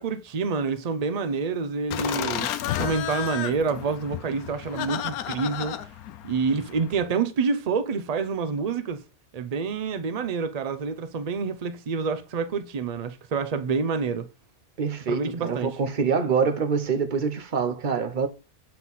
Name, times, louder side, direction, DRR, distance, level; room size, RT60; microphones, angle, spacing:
voice 1, 0.0-5.9 6.2-9.0 9.3-14.3 15.1-15.8, right 5 dB, 85° right, 0.3 m, -28 dB
Laughter, 1.9-7.1, left 11 dB, 90° left, 1.1 m, -32 dB
voice 2, 14.8-18.3, right 5 dB, 45° right, 0.7 m, -25 dB
7.4 x 4.3 x 4.0 m
omnidirectional pair, 1.5 m